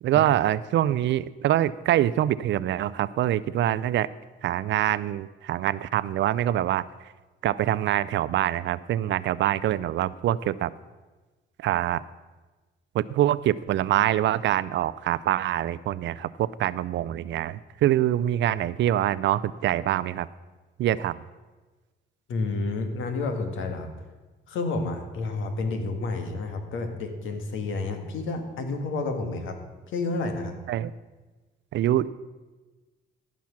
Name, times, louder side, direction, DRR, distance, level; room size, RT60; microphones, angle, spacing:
voice 1, 0.0-4.1 4.4-6.9 7.4-10.7 11.6-12.0 12.9-20.3 20.8-21.2 30.7-30.9 31.7-32.1, right 12 dB, 70° right, 18 dB, 0.4 m, -25 dB
voice 2, 22.3-23.9 24.5-29.6 29.9-30.6, left 3 dB, 80° left, 5 dB, 1.6 m, -30 dB
15.0 x 6.1 x 5.9 m, 1.3 s
cardioid pair, 90°, 20 cm